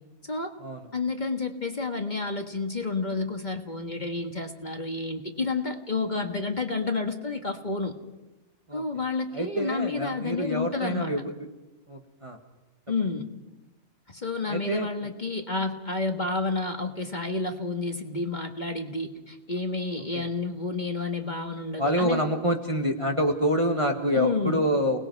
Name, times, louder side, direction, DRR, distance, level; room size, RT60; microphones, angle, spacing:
voice 1, 0.9-7.9 8.7-11.1 12.9-13.3 14.1-22.2 24.2-24.6, left 3 dB, 30° left, 4 dB, 1.7 m, -30 dB
voice 2, 9.3-11.3 11.9-12.4 14.5-14.9 20.1-20.2 21.8-25.0, equal, 20° right, 3 dB, 1.5 m, -26 dB
29.5 x 19.5 x 4.7 m, 1.1 s
omnidirectional pair, 1.5 m